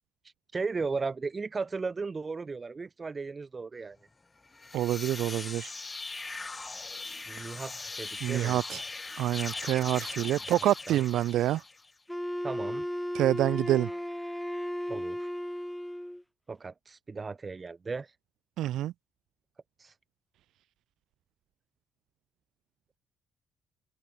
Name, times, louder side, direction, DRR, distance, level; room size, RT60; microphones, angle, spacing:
voice 1, 0.5-4.0 7.3-8.8 10.9-11.0 12.4-12.9 14.9-15.3 16.5-18.1 19.8-19.9, right 4 dB, 30° right, 4.8 m, -36 dB
sound 1, 4.5-11.9, left 3 dB, 25° left, 7.2 m, -40 dB
voice 2, 4.7-5.7 7.4-7.5 8.2-8.8 9.2-11.6 13.1-13.9 18.6-18.9, right 13 dB, 80° right, 1.6 m, -27 dB
Wind instrument woodwind instrument, 12.1-16.2, equal, 5° left, 2.0 m, -35 dB
cardioid pair, 90°, 0 cm